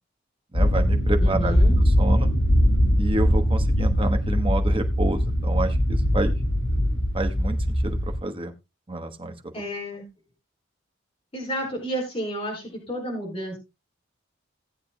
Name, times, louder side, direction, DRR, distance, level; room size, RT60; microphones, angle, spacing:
sound 1, 0.5-8.2, equal, 90° left, 7.6 m, -21 dB
voice 1, 0.5-1.5 2.0-2.3 3.0-6.3 7.1-7.6 7.8-8.5 8.9-9.3, right 2 dB, 25° right, 6 dB, 1.1 m, -29 dB
voice 2, 1.2-1.8 9.5-10.0 11.3-13.6, equal, 30° left, 0 dB, 4.7 m, -31 dB
17.5 x 8.4 x 2.2 m, 0.24 s
head